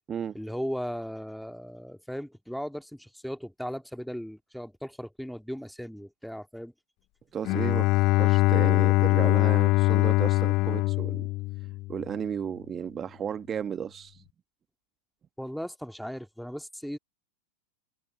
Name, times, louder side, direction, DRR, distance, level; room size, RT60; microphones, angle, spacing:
voice 1, 0.3-6.7 15.4-17.0, equal, ahead, 2.2 m, -37 dB
voice 2, 7.3-11.3 11.9-14.2, right 8 dB, 25° right, 1.3 m, -34 dB
Bowed string instrument, 7.4-12.1, left 20 dB, 40° left, 1.2 m, -23 dB
open air
figure-of-eight pair, 90°, 0 cm